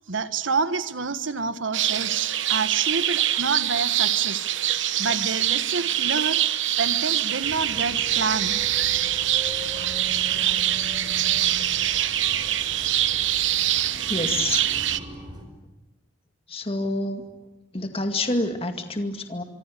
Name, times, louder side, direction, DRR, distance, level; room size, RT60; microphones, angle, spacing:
voice 1, 0.1-4.5 4.7-6.4 6.8-8.6, right 4 dB, 90° right, 12 dB, 1.4 m, -28 dB
sound 1, 1.7-15.0, right 12 dB, 75° right, 1.0 m, -24 dB
sound 2, 7.4-15.4, equal, 25° right, 4.5 m, -40 dB
voice 2, 14.1-14.7 16.5-17.3 17.7-19.4, left 2 dB, 30° left, 6 dB, 2.2 m, -27 dB
26.0 x 24.0 x 8.5 m, 1.1 s
head